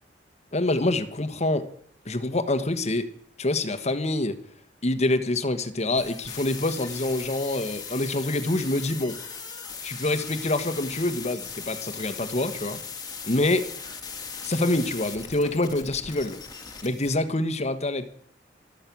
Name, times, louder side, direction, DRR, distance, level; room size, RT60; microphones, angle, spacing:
voice 1, 0.5-1.7 2.0-3.1 3.4-4.4 4.8-9.2 9.8-12.8 13.3-13.7 14.4-16.4 16.8-18.1, left 2 dB, 40° left, 1.3 m, -26 dB
sound 1, 6.0-17.1, left 5 dB, 20° left, 2.1 m, -38 dB
14.0 x 13.0 x 6.1 m
head